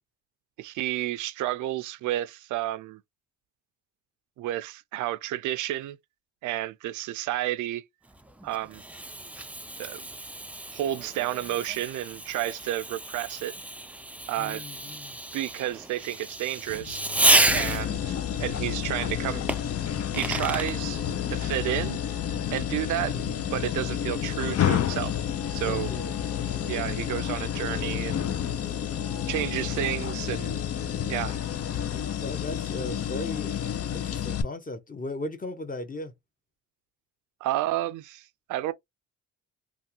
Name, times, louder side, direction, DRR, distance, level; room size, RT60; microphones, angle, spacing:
voice 1, 0.6-3.0 4.4-6.0 6.4-7.8 8.4-8.8 9.8-10.0 10.7-13.5 14.3-14.6 15.3-17.0 17.5-19.4 20.2-21.0 21.3-22.0 22.5-23.1 23.5-25.1 25.5-25.9 26.7-28.3 29.3-30.6 31.1-31.4 37.4-38.7, right 14 dB, 80° right, 0.5 m, -31 dB
Fireworks, 8.1-18.1 19.5-20.8, right 1 dB, 5° right, 0.4 m, -30 dB
voice 2, 14.4-15.2 23.0-23.3 25.6-26.1 31.9-33.5 33.9-36.1, left 2 dB, 30° left, 1.1 m, -37 dB
sound 1, 16.7-31.7, left 6 dB, 90° left, 0.9 m, -43 dB
sound 2, 17.5-34.4, left 10 dB, 55° left, 0.6 m, -30 dB
3.3 x 2.3 x 2.8 m
cardioid pair, 90°, 30 cm